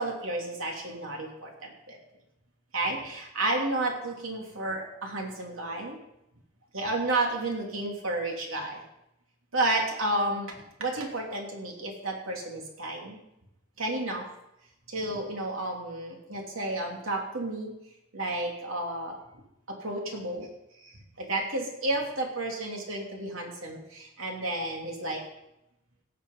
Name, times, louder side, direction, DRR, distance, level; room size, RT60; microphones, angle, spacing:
voice 1, 0.0-2.0 2.7-6.0 6.7-8.8 9.5-13.2 13.8-14.2 14.9-17.7 18.1-19.2 19.7-20.5 20.8-25.2, right 2 dB, 85° right, 0 dB, 3.0 m, -31 dB
17.5 x 6.9 x 5.5 m, 0.86 s
head